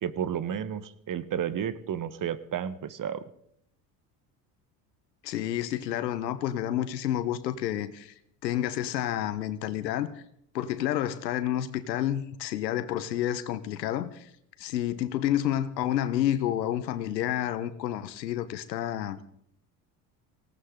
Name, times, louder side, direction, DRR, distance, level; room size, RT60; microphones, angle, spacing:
voice 1, 0.0-3.2, right 9 dB, 40° right, 15 dB, 1.3 m, -32 dB
voice 2, 5.2-8.1 8.4-10.1 10.5-14.3 14.6-19.3, left 12 dB, 90° left, 13 dB, 1.2 m, -29 dB
19.0 x 17.0 x 3.9 m, 0.70 s
hypercardioid pair, 70°, 49 cm